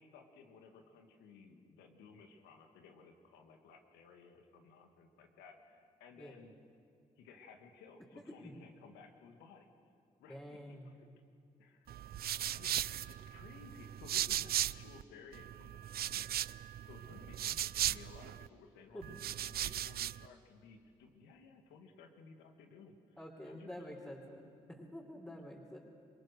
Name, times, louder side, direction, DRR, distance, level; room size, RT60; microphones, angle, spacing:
voice 1, 0.0-6.5 7.2-9.7 10.2-10.6 10.8-11.1 11.6-11.9 12.5-23.2 23.4-24.2, left 4 dB, 85° left, 5 dB, 2.1 m, -58 dB
voice 2, 10.3-10.9 18.9-19.1 23.2-25.8, equal, 10° left, -2 dB, 4.5 m, -48 dB
sound 1, 11.9-15.0 15.3-18.5 19.0-20.3, right 11 dB, 65° right, 0.5 m, -38 dB
28.0 x 23.0 x 6.7 m, 2.5 s
hypercardioid pair, 45°, 17 cm